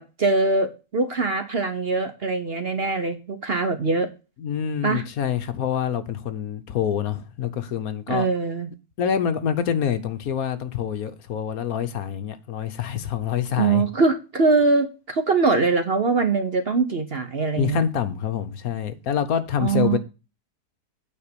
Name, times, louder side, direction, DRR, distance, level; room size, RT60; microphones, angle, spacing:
voice 1, 0.0-4.1 4.8-5.0 8.1-8.7 13.6-17.8 19.6-20.0, right 4 dB, 45° right, 0.9 m, -22 dB
voice 2, 4.4-8.3 9.0-13.8 17.6-20.0, left 8 dB, 65° left, 1.3 m, -26 dB
8.9 x 4.5 x 6.7 m
omnidirectional pair, 1.7 m